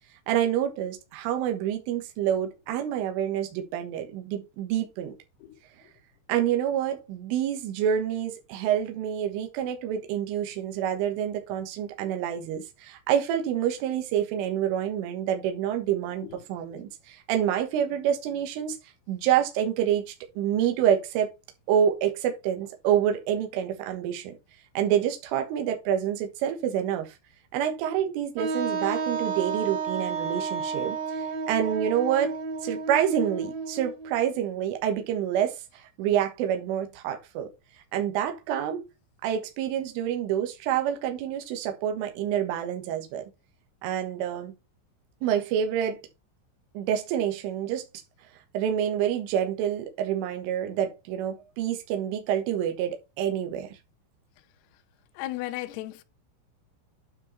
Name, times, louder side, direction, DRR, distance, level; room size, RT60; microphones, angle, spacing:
voice 1, 0.3-5.1 6.3-18.8 19.1-21.3 21.7-24.4 24.8-27.2 27.5-32.4 32.6-37.5 37.9-38.9 39.2-43.3 43.8-44.5 45.2-46.0 46.8-47.9 48.5-53.7, right 9 dB, 75° right, 3.8 m, -27 dB
Wind instrument woodwind instrument, 28.4-34.1, right 5 dB, 60° right, 4.0 m, -31 dB
voice 2, 55.2-56.0, left 16 dB, 85° left, 2.3 m, -35 dB
9.5 x 4.7 x 4.4 m
omnidirectional pair, 6.0 m